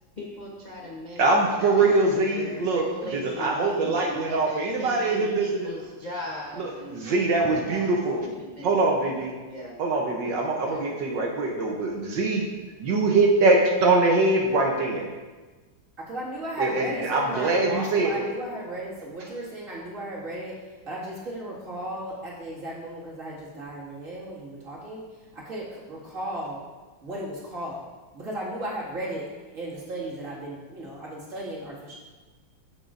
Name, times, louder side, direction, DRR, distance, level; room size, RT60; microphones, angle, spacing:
voice 1, 0.2-1.2 1.6-8.7 9.5-9.8 10.7-10.9, equal, 50° left, -3 dB, 0.5 m, -39 dB
voice 2, 1.2-5.7 6.6-8.2 8.6-9.3 9.8-12.5 12.8-15.1 16.6-18.3, right 3 dB, 70° right, 0 dB, 1.4 m, -23 dB
voice 3, 16.0-26.6 27.0-27.8 28.1-32.0, right 1 dB, 40° right, -7 dB, 2.3 m, -35 dB
14.0 x 6.0 x 2.5 m, 1.3 s
omnidirectional pair, 2.2 m